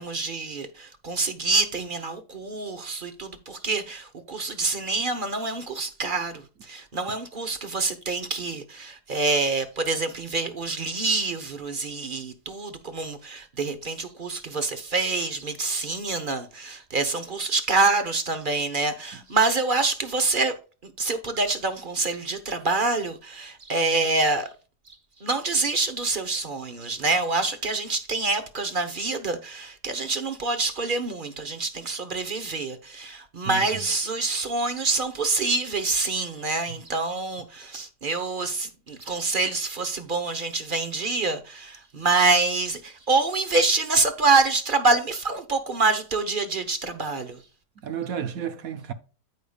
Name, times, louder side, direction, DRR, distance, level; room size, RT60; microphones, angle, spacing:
voice 1, 0.0-20.5 20.8-24.5 25.2-47.4, right 3 dB, 40° right, 0.8 m, -26 dB
voice 2, 33.4-33.8 36.7-36.8 47.8-48.9, right 8 dB, 65° right, 1.1 m, -32 dB
13.5 x 5.1 x 2.3 m
omnidirectional pair, 1.8 m